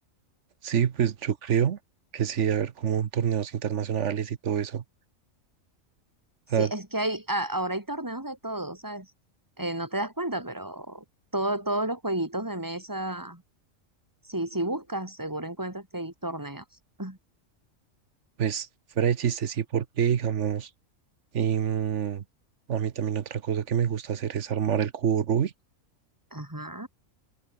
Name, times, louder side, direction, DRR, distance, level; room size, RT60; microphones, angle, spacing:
voice 1, 0.6-1.8 2.1-4.8 6.5-6.7 18.4-18.7 19.0-20.7 21.3-22.2 22.7-25.5, right 8 dB, 65° right, 1.3 m, -26 dB
voice 2, 6.6-9.1 9.6-11.0 11.3-13.4 14.3-16.6 17.0-17.2 26.3-26.9, right 1 dB, 15° right, 3.8 m, -31 dB
omnidirectional pair, 1.4 m